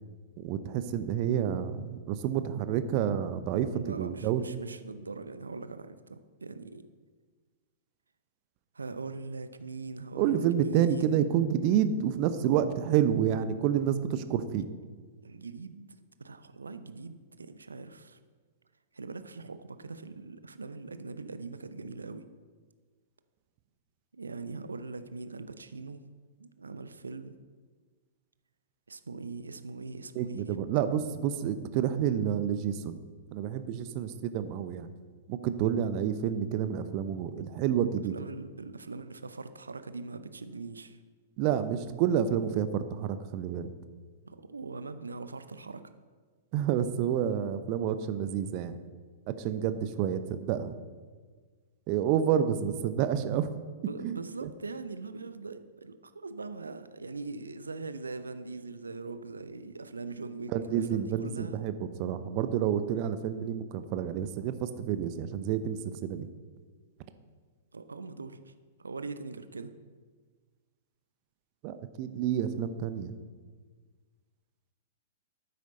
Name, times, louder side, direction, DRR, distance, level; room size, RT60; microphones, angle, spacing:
voice 1, 0.4-4.4 10.1-14.7 30.1-33.0 33.3-34.9 35.3-38.1 41.4-43.7 46.5-48.7 49.4-50.7 51.9-53.5 54.0-54.5 60.5-66.3 71.6-73.2, right 9 dB, 35° right, 11 dB, 0.7 m, -29 dB
voice 2, 3.7-6.9 8.7-11.2 15.2-15.9 16.2-18.2 18.9-22.2 24.1-26.0 26.4-27.4 28.9-30.6 37.4-37.5 38.1-41.0 44.3-45.9 53.9-61.6 67.7-68.5 68.8-69.7, right 3 dB, 75° right, 11 dB, 0.7 m, -41 dB
12.0 x 9.6 x 3.9 m, 1.5 s
figure-of-eight pair, 105°, 0 cm